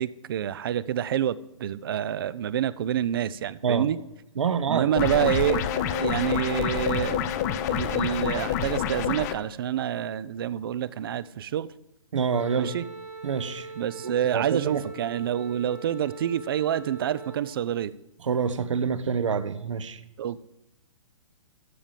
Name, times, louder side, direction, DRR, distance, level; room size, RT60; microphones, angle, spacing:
voice 1, 0.0-4.0 4.7-7.3 7.7-11.7 12.6-12.8 13.8-17.9 20.2-20.4, right 10 dB, 45° right, 18 dB, 0.4 m, -27 dB
voice 2, 4.4-4.9 12.1-12.7 13.2-13.7 14.0-14.8 18.2-20.0, right 6 dB, 65° right, 12 dB, 0.8 m, -27 dB
sound 1, 5.0-9.3, left 9 dB, 30° left, 0.6 m, -27 dB
Wind instrument woodwind instrument, 12.3-17.5, right 3 dB, 90° right, 4.7 m, -42 dB
12.5 x 5.0 x 7.3 m, 0.86 s
figure-of-eight pair, 125°, 17 cm